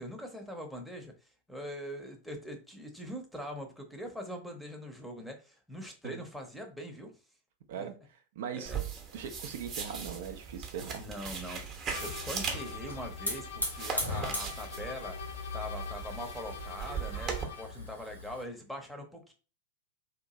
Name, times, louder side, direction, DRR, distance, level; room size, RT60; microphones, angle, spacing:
voice 1, 0.0-7.1 7.8-7.9 8.5-8.8 11.0-15.2 15.5-19.3, equal, ahead, 3 dB, 0.7 m, -42 dB
voice 2, 8.4-8.7 9.1-11.0, right 7 dB, 55° right, 6 dB, 0.4 m, -40 dB
sound 1, 8.7-17.4, right 6 dB, 30° right, 0.8 m, -39 dB
Hiss / Fire, 11.6-18.4, left 1 dB, 85° left, 1.3 m, -40 dB
sound 2, 11.9-17.8, left 7 dB, 55° left, 0.4 m, -45 dB
2.8 x 2.5 x 3.8 m, 0.35 s
figure-of-eight pair, 90°, 0 cm